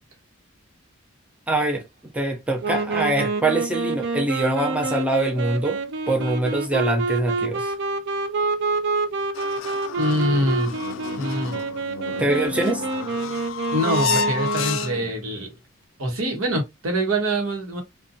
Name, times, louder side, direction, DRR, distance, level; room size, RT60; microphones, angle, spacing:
voice 1, 1.5-1.8 2.1-5.8 6.1-7.7 12.2-12.8, right 2 dB, 5° right, 0.5 m, -23 dB
Wind instrument woodwind instrument, 2.6-15.1, right 3 dB, 55° right, 0.4 m, -27 dB
sound 1, 9.4-15.2, left 6 dB, 65° left, 0.3 m, -30 dB
voice 2, 10.0-10.7 11.2-11.6 13.7-15.5 16.0-17.8, equal, 80° right, 1.0 m, -24 dB
2.6 x 2.2 x 2.6 m
head